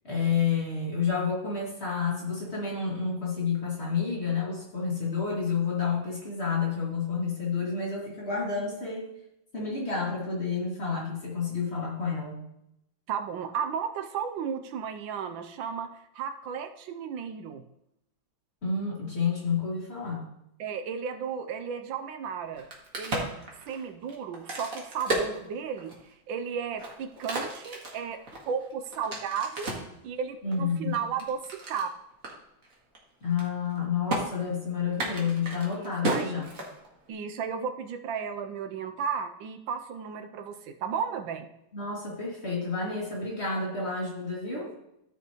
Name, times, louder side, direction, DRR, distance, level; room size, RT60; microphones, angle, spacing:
voice 1, 0.0-9.1 9.5-12.4 18.6-20.3 30.4-31.0 33.2-36.5 41.7-44.7, left 5 dB, 30° left, -5 dB, 2.7 m, -30 dB
voice 2, 13.1-17.6 20.6-22.6 23.0-28.2 28.5-29.7 30.0-31.9 35.7-36.5 37.1-41.5, right 7 dB, 80° right, 7 dB, 1.4 m, -34 dB
Crack, 22.5-26.1 26.6-29.9 30.5-31.9 32.2-32.3 32.6-33.0 33.2-33.8 34.1-34.2 34.9-37.1, right 2 dB, 45° right, 2.0 m, -34 dB
13.5 x 5.8 x 3.0 m, 0.80 s
omnidirectional pair, 2.1 m